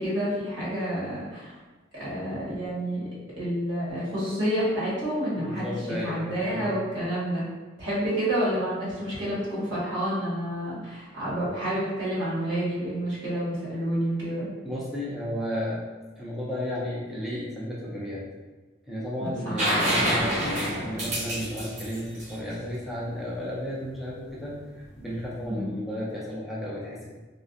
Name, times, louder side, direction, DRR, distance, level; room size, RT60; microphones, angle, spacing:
voice 1, 0.0-1.6 1.9-3.0 3.4-7.4 7.8-14.5 19.2-19.6 25.5-25.7, equal, 70° right, -9 dB, 1.2 m, -29 dB
voice 2, 5.4-6.7 14.6-15.8 16.2-18.3 18.9-24.5 24.9-27.0, equal, ahead, -7 dB, 0.4 m, -33 dB
sound 1, 19.6-23.3 25.2-25.3, equal, 35° right, 0.8 m, -27 dB
2.4 x 2.1 x 2.5 m, 1.3 s
head